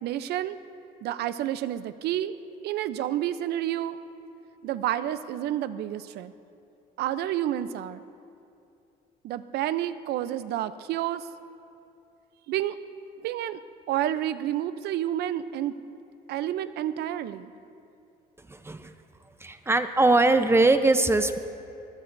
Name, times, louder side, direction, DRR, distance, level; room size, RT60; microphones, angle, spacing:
voice 1, 0.0-0.6 1.0-2.3 2.6-4.0 4.6-6.3 7.0-8.0 9.2-11.2 12.5-12.8 13.2-13.6 13.9-15.7 16.3-17.5, right 12 dB, 75° right, 13 dB, 0.6 m, -29 dB
voice 2, 18.5-18.9 19.4-21.4, right 2 dB, 15° right, 9 dB, 0.7 m, -21 dB
25.5 x 20.5 x 2.7 m, 2.7 s
cardioid pair, 110°, 17 cm